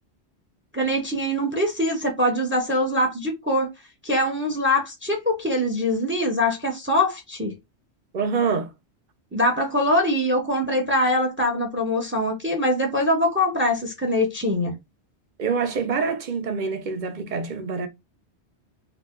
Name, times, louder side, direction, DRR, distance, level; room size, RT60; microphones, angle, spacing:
voice 1, 0.7-3.7 4.0-7.5 9.3-14.7, left 1 dB, 15° right, 0.6 m, -23 dB
voice 2, 8.1-8.7 15.4-17.9, right 5 dB, 55° right, 0.6 m, -26 dB
2.8 x 2.1 x 3.5 m
omnidirectional pair, 1.2 m